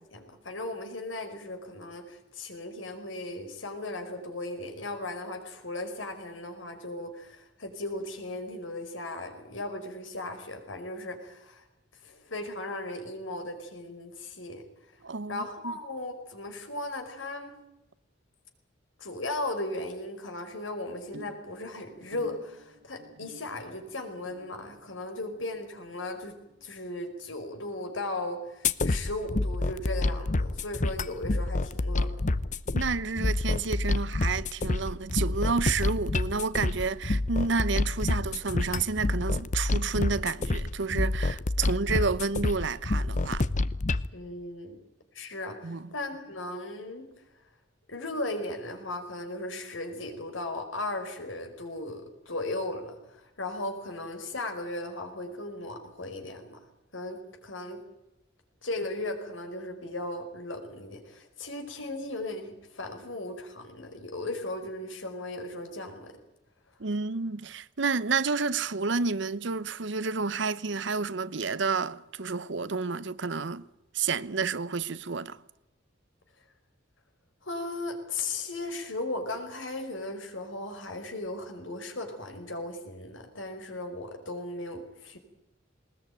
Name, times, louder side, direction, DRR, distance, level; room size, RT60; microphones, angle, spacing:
voice 1, 0.1-11.6 12.0-14.6 15.3-17.6 19.0-26.3 26.6-32.1 44.1-44.8 45.1-47.1 47.9-56.6 56.9-57.8 58.6-66.1 77.4-85.2, left 2 dB, 85° left, 4.9 m, -37 dB
voice 2, 15.0-15.7 32.7-43.5 45.6-45.9 66.8-73.6 73.9-75.4, right 4 dB, 65° right, 0.8 m, -30 dB
sound 1, 21.1-27.7 28.0-28.4 28.7-28.8, equal, 85° right, 2.3 m, -53 dB
sound 2, 28.6-44.1, left 2 dB, 40° left, 0.8 m, -28 dB
20.5 x 20.5 x 9.3 m
head